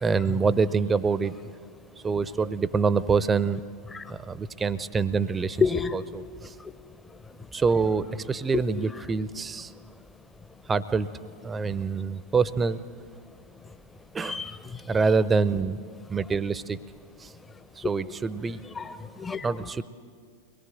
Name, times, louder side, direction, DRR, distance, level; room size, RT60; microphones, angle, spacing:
voice 1, 0.0-1.3 2.0-3.6 4.1-5.6 5.9-6.5 7.5-9.7 10.7-11.1 11.4-12.8 14.1-14.4 14.9-15.8 16.1-16.8 17.2-17.3 17.8-18.6 19.4-19.8, right 5 dB, 15° right, 0.7 m, -26 dB
voice 2, 5.6-6.0 8.5-8.6 14.2-14.8 18.8-19.7, left 5 dB, 15° left, 0.8 m, -28 dB
23.0 x 20.5 x 7.8 m
figure-of-eight pair, 90°, 0 cm